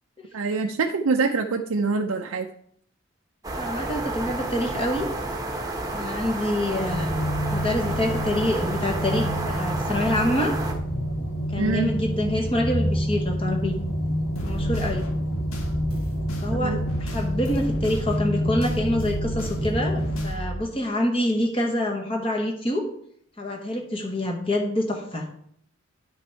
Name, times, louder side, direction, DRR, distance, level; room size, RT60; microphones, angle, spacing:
voice 1, 0.3-2.5 11.6-11.9 16.6-16.8, right 4 dB, 85° right, 4 dB, 0.5 m, -25 dB
sound 1, 3.4-10.7, right 2 dB, 15° right, 1.0 m, -31 dB
voice 2, 3.5-5.1 5.9-7.1 7.5-10.5 11.5-13.8 14.4-15.1 16.4-22.8 23.4-25.3, left 1 dB, 25° left, 1 dB, 1.1 m, -26 dB
sound 2, 6.7-20.1, equal, 70° left, 2.7 m, -28 dB
sound 3, 14.3-20.6, equal, 85° left, 1.6 m, -33 dB
9.8 x 6.1 x 4.5 m, 0.65 s
head